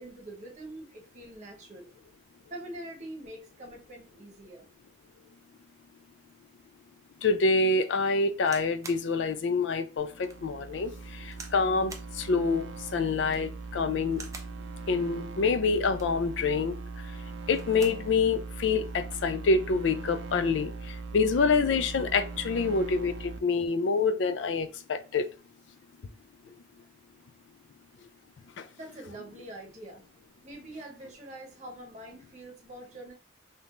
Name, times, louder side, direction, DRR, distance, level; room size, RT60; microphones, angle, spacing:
voice 1, 0.0-1.9 2.5-4.7 28.8-30.1 30.4-33.1, right 1 dB, 40° right, 0.8 m, -44 dB
voice 2, 7.2-14.2 14.9-16.7 17.5-25.3, left 4 dB, 75° left, 0.4 m, -27 dB
sound 1, 8.5-9.1 9.6-9.7 10.2-10.4 11.3-11.6 11.9-12.1 13.2-13.6 14.1-14.6 15.8-16.2 17.4-18.1 18.5-18.6 18.8-19.3 20.1-20.4, right 4 dB, 15° right, 0.4 m, -46 dB
sound 2, 10.0-23.4, right 4 dB, 85° right, 0.4 m, -40 dB
3.5 x 2.7 x 2.4 m
head